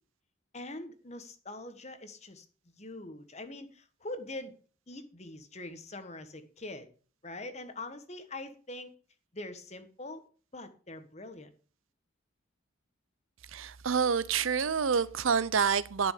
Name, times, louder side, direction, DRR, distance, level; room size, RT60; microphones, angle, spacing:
voice 1, 0.5-2.4 2.7-4.5 4.9-6.9 7.2-8.9 9.3-10.2 10.5-11.5, left 2 dB, 30° left, 1.2 m, -43 dB
voice 2, 13.5-16.1, right 6 dB, 75° right, 0.6 m, -27 dB
10.5 x 6.2 x 6.6 m
head